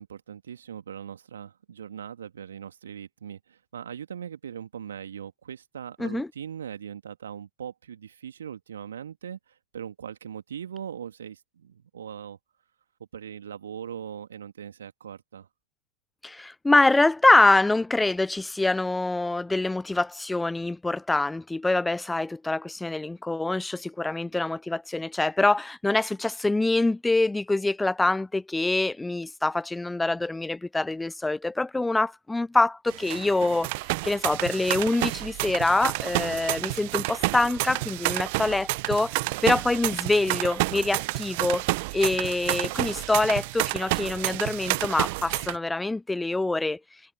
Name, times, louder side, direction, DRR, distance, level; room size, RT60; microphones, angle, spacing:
voice 1, 0.0-9.4 9.7-12.4 13.1-15.5, right 8 dB, 70° right, 2.6 m, -40 dB
voice 2, 16.2-33.7 34.0-39.2 39.4-41.6 41.9-46.8, left 2 dB, 5° left, 0.6 m, -25 dB
sound 1, 32.9-45.6, right 25 dB, 50° right, 1.0 m, -30 dB
figure-of-eight pair, 90°, 0 cm